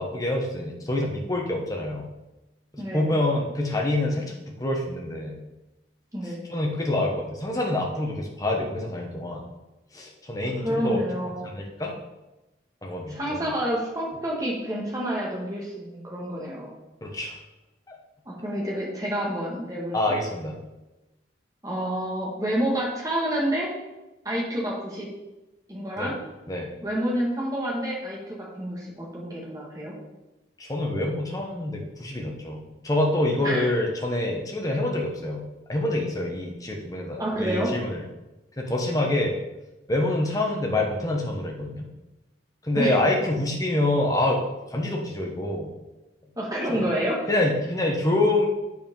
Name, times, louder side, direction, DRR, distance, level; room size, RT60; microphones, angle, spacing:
voice 1, 0.0-2.0 2.9-5.4 6.5-9.4 9.9-11.0 11.4-11.9 12.8-13.5 17.0-17.4 19.9-20.6 26.0-26.1 26.5-26.7 30.6-35.4 35.7-38.0 38.6-39.4 39.9-41.9 42.6-44.4 44.7-45.7 46.7-46.8 47.3-48.4, left 1 dB, 20° left, 0 dB, 1.2 m, -26 dB
voice 2, 2.8-3.1 6.1-6.5 10.6-11.5 13.1-16.7 18.3-20.2 21.6-23.7 24.3-25.1 25.7-26.2 26.8-29.9 33.4-33.7 37.2-37.7 42.7-43.0 46.4-47.2, equal, 20° right, -3 dB, 1.8 m, -28 dB
8.3 x 4.7 x 5.4 m, 1.0 s
head